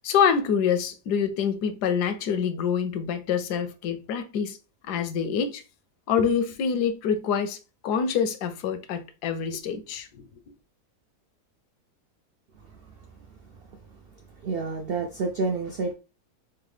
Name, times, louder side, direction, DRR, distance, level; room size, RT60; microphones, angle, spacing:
voice 1, 0.0-4.6 4.9-5.6 6.1-7.6 7.8-10.3, left 7 dB, 85° left, 1.2 m, -26 dB
voice 2, 14.4-15.9, right 4 dB, 90° right, 0.5 m, -28 dB
4.5 x 2.1 x 3.2 m
omnidirectional pair, 1.7 m